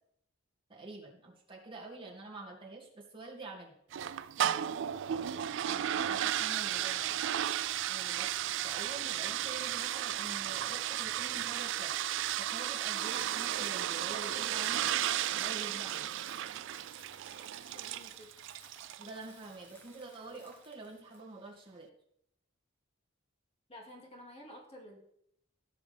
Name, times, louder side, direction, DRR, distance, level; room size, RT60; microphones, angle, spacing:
voice 1, 0.7-3.7 5.7-7.2 7.9-12.0 12.4-14.9 15.4-16.1 19.0-21.9, right 2 dB, 25° right, -2 dB, 2.2 m, -47 dB
sound 1, 3.9-19.2, right 11 dB, 60° right, 0.3 m, -34 dB
voice 2, 4.4-4.8 17.7-18.3 23.7-25.0, equal, 30° left, 0 dB, 2.3 m, -51 dB
sound 2, 4.9-11.7, left 2 dB, 85° left, 1.5 m, -62 dB
Coin (dropping), 13.8-21.2, left 1 dB, 10° left, 1.2 m, -59 dB
16.5 x 6.4 x 3.4 m, 0.72 s
head